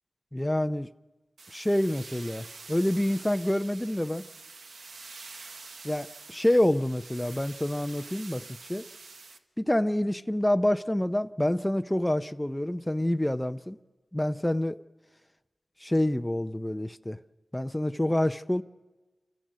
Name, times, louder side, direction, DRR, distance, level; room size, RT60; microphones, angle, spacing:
voice 1, 0.3-0.9 1.5-4.2 5.8-8.9 9.6-13.8 14.1-14.8 15.8-17.2 17.5-18.6, left 1 dB, 10° left, 0.5 m, -27 dB
sound 1, 1.4-9.4, right 4 dB, 85° right, 1.1 m, -46 dB
28.5 x 15.0 x 6.2 m
wide cardioid pair, 65°, 0 cm